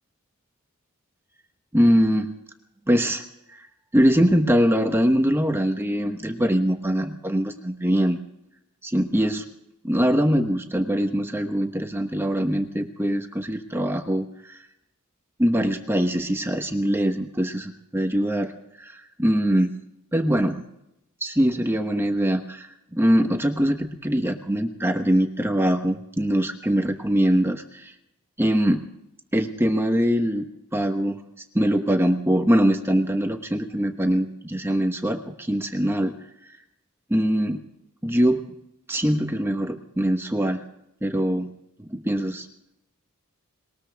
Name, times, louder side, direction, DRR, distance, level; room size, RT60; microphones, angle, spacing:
voice 1, 1.7-2.3 2.9-3.2 3.5-3.7 3.9-8.2 8.8-9.4 9.8-14.6 15.4-18.5 18.8-19.7 20.1-20.6 21.2-27.9 28.4-28.9 29.3-30.5 30.7-31.2 31.5-36.1 37.1-37.6 38.0-38.5 38.9-40.6 41.0-41.5 41.8-42.5, equal, 10° right, 5 dB, 1.1 m, -22 dB
21.0 x 19.5 x 3.5 m, 0.81 s
head